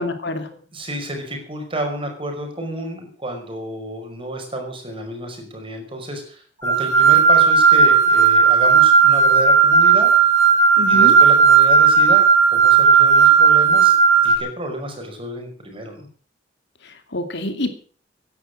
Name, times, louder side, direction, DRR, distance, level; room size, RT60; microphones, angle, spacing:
voice 1, 0.0-0.6 10.8-11.2 16.8-17.7, left 1 dB, 65° left, 7 dB, 2.5 m, -26 dB
voice 2, 0.7-10.1 10.9-14.0 14.2-16.1, right 1 dB, 30° right, 3 dB, 5.6 m, -30 dB
sound 1, 6.6-14.4, right 6 dB, 15° left, 2.8 m, -13 dB
16.5 x 11.0 x 6.3 m, 0.43 s
head